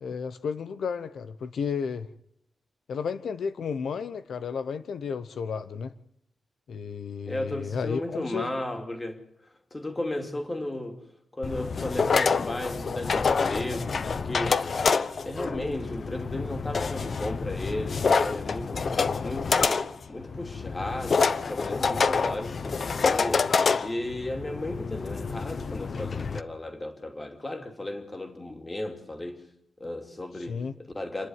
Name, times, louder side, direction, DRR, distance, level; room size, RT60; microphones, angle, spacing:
voice 1, 0.0-2.1 2.9-5.9 6.7-8.5 30.5-30.7, left 6 dB, 75° left, 1.0 m, -32 dB
voice 2, 7.3-9.2 9.7-11.0 11.3-14.6 15.0-29.4 29.8-31.3, left 1 dB, 20° left, 2.9 m, -35 dB
sound 1, 11.4-26.4, left 5 dB, 45° left, 0.9 m, -27 dB
28.5 x 11.0 x 9.6 m
wide cardioid pair, 135°, 0 cm